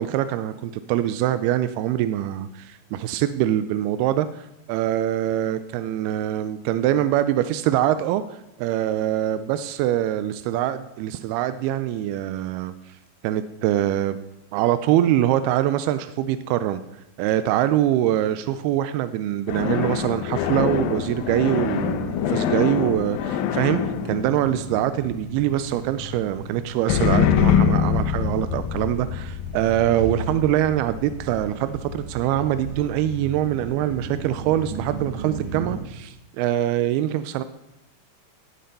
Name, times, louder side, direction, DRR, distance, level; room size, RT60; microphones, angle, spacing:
voice 1, 0.0-13.0 13.2-14.2 14.5-16.8 17.2-37.4, right 12 dB, 80° right, 12 dB, 2.3 m, -24 dB
sound 1, 19.5-25.4 26.9-32.2, left 8 dB, 80° left, 2.2 m, -25 dB
sound 2, 20.6-35.8, right 3 dB, 55° right, 1.5 m, -37 dB
17.5 x 8.5 x 5.3 m, 0.91 s
omnidirectional pair, 5.0 m